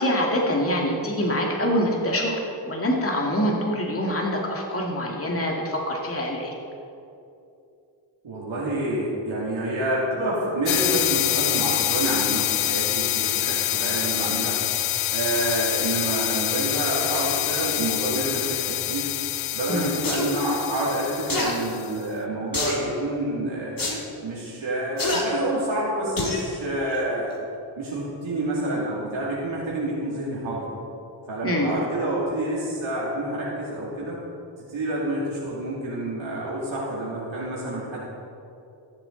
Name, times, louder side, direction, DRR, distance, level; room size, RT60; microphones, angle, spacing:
voice 1, 0.0-6.5 19.7-19.9 31.4-31.7, equal, 30° left, -1 dB, 2.1 m, -25 dB
voice 2, 8.2-14.6 15.1-19.1 19.5-23.7 24.2-27.3 27.8-30.7 31.3-34.2 34.7-38.0, right 1 dB, 75° right, -7 dB, 2.6 m, -28 dB
sound 1, 10.7-21.9, left 14 dB, 85° left, 0.5 m, -26 dB
sound 2, 20.0-20.3 21.3-21.5 22.5-22.8 23.8-24.0 25.0-25.2 26.2-26.4 26.9-27.0, left 2 dB, 45° left, 2.3 m, -26 dB
15.5 x 7.4 x 3.9 m, 2.6 s
cardioid pair, 50°, 47 cm